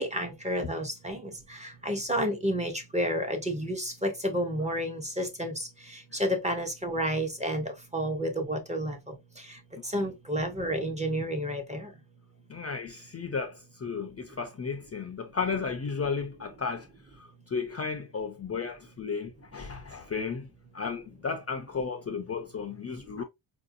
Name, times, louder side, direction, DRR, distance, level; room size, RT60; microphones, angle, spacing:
voice 1, 0.0-11.9, equal, 15° right, 0.6 m, -31 dB
voice 2, 12.5-16.9 17.2-20.5 20.7-23.2, left 5 dB, 35° left, 0.4 m, -34 dB
4.6 x 2.6 x 2.4 m
wide cardioid pair, 175°, 46 cm